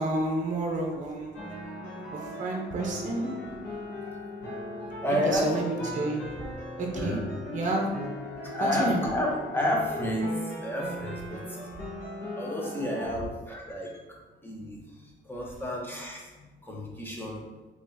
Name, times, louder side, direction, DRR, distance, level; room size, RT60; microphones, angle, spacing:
voice 1, 0.0-1.3 2.1-3.3 5.3-6.3 6.8-7.2 7.5-7.9 8.6-9.0, right 2 dB, 40° right, 1 dB, 0.7 m, -30 dB
sound 1, 1.3-13.2, left 1 dB, 80° left, 1.3 m, -39 dB
voice 2, 5.0-5.6 7.0-7.2 8.4-10.3 10.6-11.4 12.3-13.9 14.4-14.8 15.3-16.2 16.6-17.4, left 1 dB, 10° left, -3 dB, 0.9 m, -30 dB
3.6 x 3.0 x 2.6 m, 1.2 s
cardioid pair, 90°, 20 cm